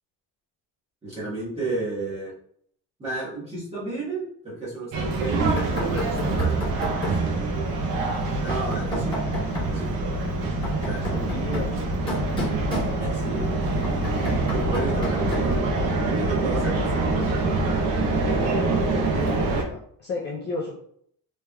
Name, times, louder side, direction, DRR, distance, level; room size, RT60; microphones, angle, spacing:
voice 1, 1.0-2.3 3.0-7.7 8.4-9.1 9.5-9.9 10.8-11.1 13.0-13.8 14.5-17.0 17.7-18.1, right 3 dB, 15° right, -8 dB, 1.2 m, -32 dB
sound 1, 4.9-19.6, right 3 dB, 75° right, 0.7 m, -25 dB
Knock, 5.6-7.3 8.5-9.8 10.4-13.3 13.8-15.6, left 1 dB, 15° left, 1.0 m, -32 dB
voice 2, 10.6-11.7 18.9-20.7, left 3 dB, 30° left, -4 dB, 0.5 m, -34 dB
3.2 x 3.1 x 2.2 m, 0.64 s
cardioid pair, 175°, 35 cm